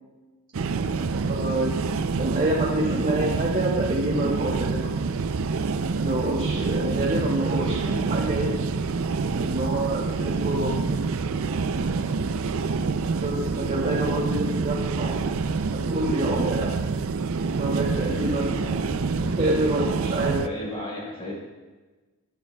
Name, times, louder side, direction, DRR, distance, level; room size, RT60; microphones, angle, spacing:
sound 1, 0.5-20.5, right 4 dB, 70° right, 0.5 m, -27 dB
voice 1, 1.2-1.8 2.2-4.9 6.0-8.5 9.4-11.0 13.1-15.2 15.7-16.7 17.5-18.9 19.2-20.4, right 1 dB, 35° right, -5 dB, 2.3 m, -27 dB
voice 2, 18.0-18.4 20.2-21.3, left 1 dB, 25° left, -3 dB, 5.0 m, -36 dB
21.5 x 12.5 x 2.3 m, 1.2 s
head